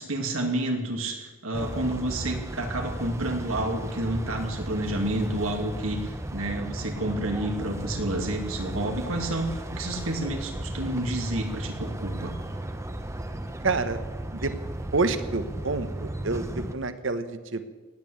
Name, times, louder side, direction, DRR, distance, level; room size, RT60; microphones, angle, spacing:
voice 1, 0.0-12.3, right 1 dB, 80° right, 3 dB, 2.7 m, -30 dB
sound 1, 1.5-16.8, right 1 dB, 15° right, 0.9 m, -35 dB
voice 2, 13.6-14.0 14.3-14.5 14.9-17.7, right 3 dB, 60° right, 11 dB, 1.1 m, -28 dB
18.0 x 8.5 x 8.7 m, 1.3 s
head